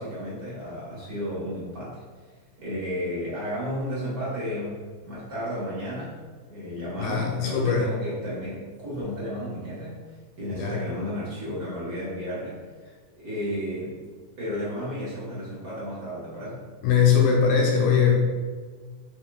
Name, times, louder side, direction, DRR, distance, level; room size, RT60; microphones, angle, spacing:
voice 1, 0.0-2.0 2.6-6.2 6.5-10.0 10.4-12.6 13.1-14.1 14.4-16.6, equal, 55° right, -9 dB, 0.9 m, -33 dB
voice 2, 7.0-7.9 10.5-10.8 16.8-18.1, left 7 dB, 80° left, 0 dB, 2.1 m, -21 dB
4.6 x 3.9 x 2.2 m, 1.5 s
omnidirectional pair, 3.6 m